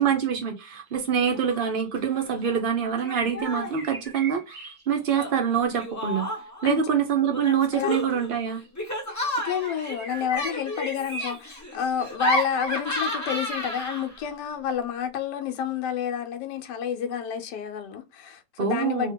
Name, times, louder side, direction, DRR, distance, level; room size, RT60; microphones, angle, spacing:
voice 1, 0.0-6.3 6.6-8.6 18.6-19.1, right 7 dB, 80° right, 0.4 m, -25 dB
sound 1, 0.9-1.0 1.7-2.0 3.0-5.5 6.9-7.0 8.6-8.7 9.6-12.4, right 1 dB, 40° right, 0.7 m, -40 dB
Laughter, 1.3-1.7 2.0-2.6 3.0-3.8 5.1-6.6 7.3-14.3, left 1 dB, 20° left, 0.5 m, -32 dB
voice 2, 9.4-19.1, left 8 dB, 90° left, 1.3 m, -29 dB
2.8 x 2.8 x 3.5 m
omnidirectional pair, 1.8 m